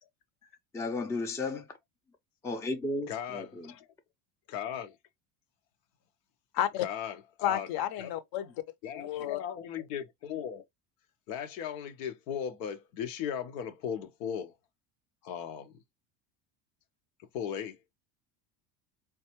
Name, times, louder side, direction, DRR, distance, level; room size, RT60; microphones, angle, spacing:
voice 1, 0.7-1.7 2.4-3.7, left 2 dB, 5° left, 0.3 m, -34 dB
voice 2, 3.1-3.9 4.5-5.0 6.8-7.7 8.0-8.1 8.8-10.6 11.3-14.5 15.2-15.8 17.3-17.8, left 8 dB, 90° left, 0.7 m, -37 dB
voice 3, 6.5-6.9 7.4-8.5 8.9-9.4, left 11 dB, 50° left, 0.7 m, -31 dB
4.0 x 2.3 x 2.8 m
supercardioid pair, 110°, 47 cm